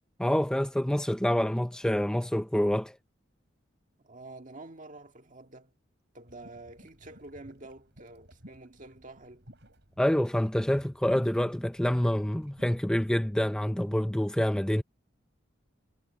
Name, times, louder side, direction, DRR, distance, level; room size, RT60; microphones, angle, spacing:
voice 1, 0.2-3.0 10.0-14.8, equal, 5° left, 0.4 m, -27 dB
voice 2, 4.0-5.7 6.1-9.4, right 2 dB, 40° right, 1.8 m, -48 dB
sound 1, 6.3-13.3, equal, 60° right, 7.7 m, -55 dB
head